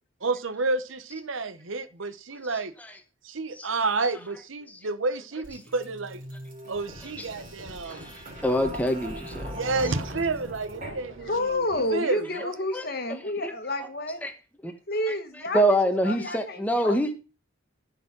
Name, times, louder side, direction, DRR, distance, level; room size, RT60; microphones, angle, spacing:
voice 1, 0.2-2.7 3.2-6.2 6.7-8.1 9.5-11.6 11.9-12.5, right 3 dB, 70° right, 0.9 m, -30 dB
voice 2, 2.4-3.0 3.5-4.4 4.7-4.9 5.5-5.6 7.0-7.3 7.9-10.0 12.2-12.9 13.4-13.9 14.2-14.3 14.6-14.7 15.1-17.1, equal, 5° left, 1.3 m, -28 dB
sound 1, 5.4-12.2, equal, 40° right, 3.3 m, -40 dB
voice 3, 11.2-14.2 14.9-15.6 16.0-17.1, left 1 dB, 45° left, 1.5 m, -30 dB
13.0 x 5.1 x 6.0 m
head